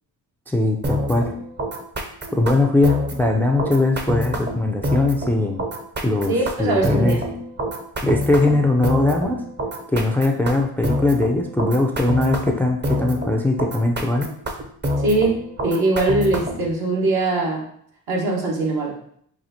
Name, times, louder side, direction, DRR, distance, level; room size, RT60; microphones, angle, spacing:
voice 1, 0.5-1.3 2.3-5.6 6.0-7.2 8.0-9.4 9.9-14.3, left 2 dB, 5° left, 3 dB, 0.3 m, -20 dB
sound 1, 0.8-16.7, equal, 30° right, 0.7 m, -27 dB
voice 2, 6.3-7.2 15.0-17.6 18.1-18.9, right 2 dB, 70° right, -3 dB, 1.4 m, -21 dB
5.7 x 2.4 x 2.7 m, 0.66 s
cardioid pair, 65°, 38 cm